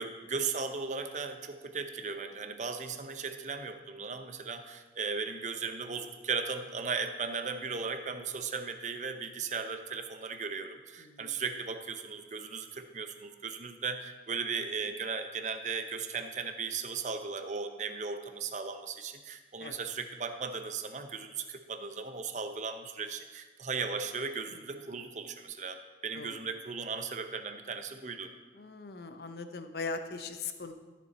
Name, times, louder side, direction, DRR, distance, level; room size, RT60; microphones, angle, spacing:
voice 1, 0.0-28.3, right 5 dB, 40° right, 8 dB, 0.7 m, -37 dB
voice 2, 11.0-11.4 19.6-19.8 24.5-24.9 26.1-26.4 28.5-30.7, left 4 dB, 65° left, 8 dB, 0.7 m, -40 dB
13.5 x 6.9 x 4.1 m, 1.3 s
head